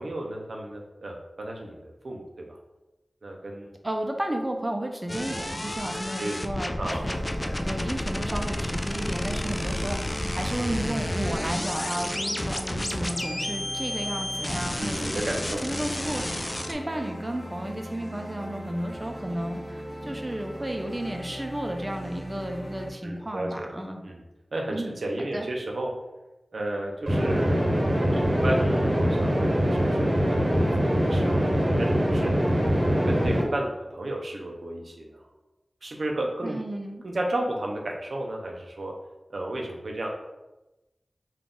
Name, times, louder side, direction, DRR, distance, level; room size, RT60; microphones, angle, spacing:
voice 1, 0.0-2.2 2.5-2.6 3.2-3.7 6.2-6.4 6.8-7.5 14.8-15.6 16.1-16.3 23.0-23.7 24.0-24.2 24.5-25.9 26.5-27.7 28.1-32.3 32.8-35.1 35.8-36.6 37.0-38.9 39.3-40.1, right 1 dB, 85° right, 0 dB, 0.5 m, -33 dB
voice 2, 3.8-7.2 7.6-15.2 15.6-24.0 24.7-24.9 25.2-25.5 36.4-37.0, right 1 dB, 25° right, 3 dB, 0.5 m, -33 dB
sound 1, 5.1-16.7, left 1 dB, 25° left, 0.3 m, -31 dB
sound 2, 6.9-22.9, equal, 5° right, 1.3 m, -39 dB
sound 3, 27.1-33.4, equal, 50° right, 0.9 m, -23 dB
3.7 x 2.4 x 3.7 m, 1.0 s
wide cardioid pair, 70°, 0 cm